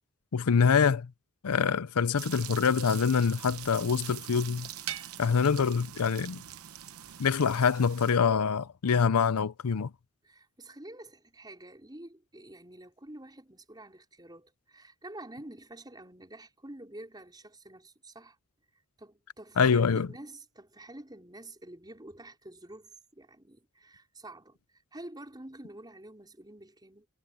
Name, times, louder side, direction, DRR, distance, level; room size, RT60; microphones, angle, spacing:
voice 1, 0.3-1.1 1.4-4.7 5.2-6.4 7.2-9.9 19.6-20.1, left 6 dB, 85° left, 0.6 m, -25 dB
sound 1, 2.2-8.1, right 12 dB, 75° right, 0.9 m, -43 dB
voice 2, 10.2-18.4 19.0-24.6 24.9-27.1, right 1 dB, 20° right, 5.1 m, -48 dB
head